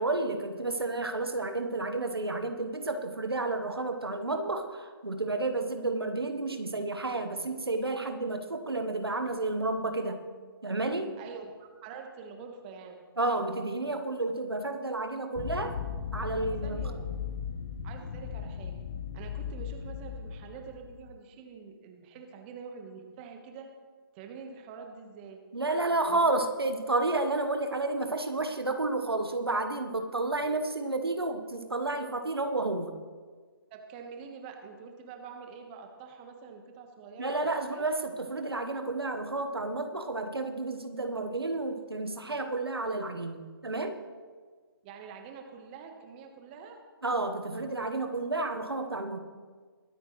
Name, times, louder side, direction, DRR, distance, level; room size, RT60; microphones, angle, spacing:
voice 1, 0.0-10.2 10.6-11.2 13.2-15.8 16.1-16.8 25.5-32.9 37.2-44.0 47.0-49.2, right 2 dB, 90° right, 6 dB, 1.3 m, -31 dB
voice 2, 11.2-13.0 16.4-17.1 17.8-18.8 19.1-23.7 24.1-25.4 26.1-26.2 33.7-37.9 44.8-46.8, right 5 dB, 25° right, 4 dB, 1.3 m, -46 dB
sound 1, 15.4-21.0, left 7 dB, 35° left, 0.9 m, -37 dB
22.0 x 9.3 x 3.2 m, 1.5 s
figure-of-eight pair, 145°, 12 cm